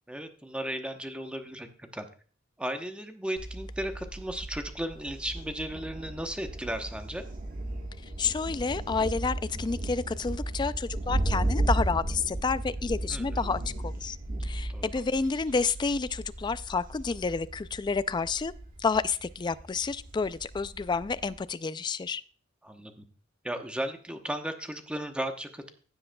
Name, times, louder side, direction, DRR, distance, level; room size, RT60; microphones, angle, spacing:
voice 1, 0.1-2.1 2.6-7.2 13.1-13.4 14.7-14.9 22.6-23.0 23.4-25.7, right 1 dB, 5° right, 0.9 m, -35 dB
Thunder, 3.4-21.4, right 1 dB, 45° right, 1.4 m, -35 dB
voice 2, 8.2-14.2 14.4-18.5 18.8-22.2, left 4 dB, 25° left, 0.3 m, -30 dB
15.5 x 7.7 x 2.3 m
head